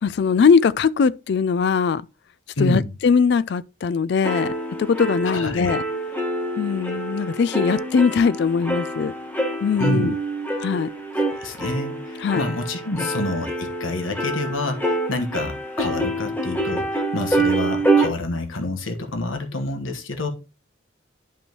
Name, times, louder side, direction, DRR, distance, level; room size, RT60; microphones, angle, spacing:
voice 1, 0.0-2.0 2.6-4.5 4.9-5.8 6.6-9.1 9.6-10.2 10.6-10.9 12.2-12.4 12.9-13.1, left 5 dB, 55° left, 0.3 m, -20 dB
voice 2, 2.6-2.9 5.3-5.7 9.8-10.1 11.4-20.3, left 2 dB, 80° left, 1.3 m, -28 dB
sound 1, 4.2-18.1, right 2 dB, 10° left, 1.2 m, -26 dB
10.0 x 5.3 x 3.0 m
head